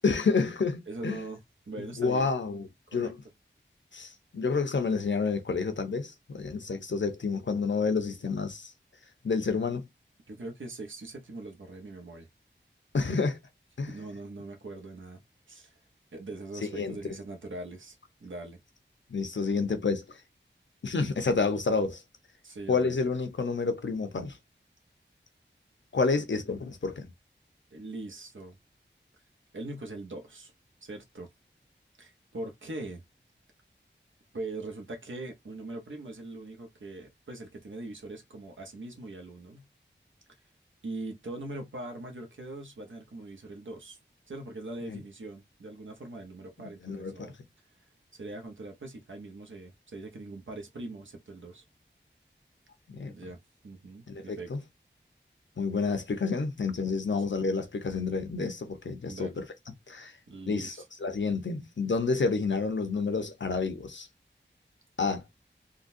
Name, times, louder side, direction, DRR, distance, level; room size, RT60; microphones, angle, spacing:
voice 1, 0.0-1.2 1.8-3.1 3.9-8.7 9.2-9.9 12.9-13.4 13.8-13.9 16.7-17.0 19.1-20.0 20.8-22.0 22.7-24.4 25.9-27.1 44.9-45.0 46.8-47.3 52.9-53.1 54.1-54.6 55.6-59.4 59.9-60.1 60.5-60.7 61.0-64.1 65.0-65.2, left 4 dB, 70° left, 0.8 m, -29 dB
voice 2, 0.9-2.3 2.9-3.1 10.3-12.3 13.9-15.2 15.5-15.8 16.1-18.6 22.4-23.0 26.1-26.3 27.7-28.6 29.5-30.5 30.8-31.3 32.0-33.0 34.3-39.7 40.8-44.0 44.3-47.4 48.1-51.6 53.1-53.4 53.6-54.5 59.1-59.4 60.3-60.9, right 2 dB, 85° right, 1.0 m, -41 dB
3.8 x 2.3 x 2.6 m
wide cardioid pair, 55°, 20 cm